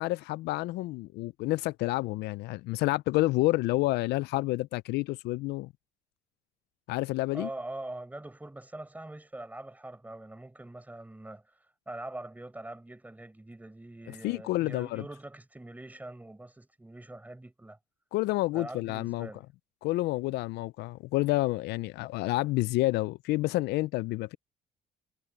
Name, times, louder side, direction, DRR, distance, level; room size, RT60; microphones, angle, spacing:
voice 1, 0.0-5.7 6.9-7.5 14.2-15.0 18.1-19.3 19.8-24.4, left 19 dB, 80° left, 0.4 m, -29 dB
voice 2, 7.3-17.8 18.5-19.4, right 1 dB, 10° right, 5.6 m, -43 dB
cardioid pair, 110°, 17 cm